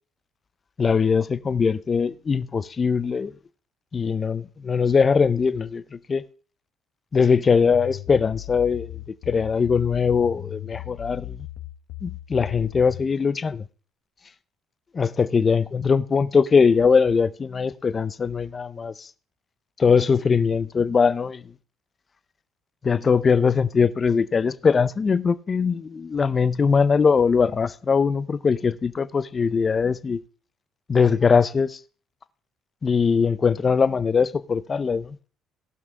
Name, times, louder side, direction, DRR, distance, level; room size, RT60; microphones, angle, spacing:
voice 1, 0.8-3.3 3.9-5.8 6.1-6.2 7.1-11.5 12.0-13.7 14.9-19.1 19.8-21.4 22.8-30.2 30.9-31.8 32.8-35.2, left 5 dB, 30° left, 0.6 m, -21 dB
sound 1, 7.7-13.1, left 15 dB, 85° left, 1.1 m, -37 dB
18.0 x 6.0 x 3.6 m
cardioid pair, 120°, 0 cm